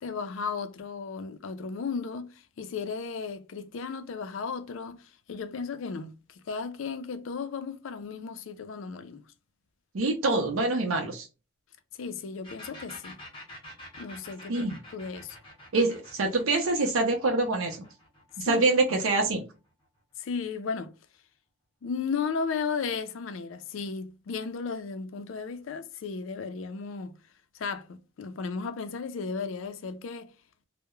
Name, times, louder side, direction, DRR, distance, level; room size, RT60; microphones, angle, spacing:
voice 1, 0.0-9.2 12.0-13.2 14.0-15.4 18.4-18.6 20.2-20.9 21.8-27.1 27.5-30.3, left 5 dB, 80° left, 0.4 m, -35 dB
voice 2, 9.9-11.3 14.5-14.8 15.7-17.8 18.4-19.4, right 2 dB, 90° right, 0.5 m, -25 dB
sound 1, 12.4-20.0, left 1 dB, 25° left, 0.8 m, -48 dB
2.3 x 2.0 x 2.9 m
head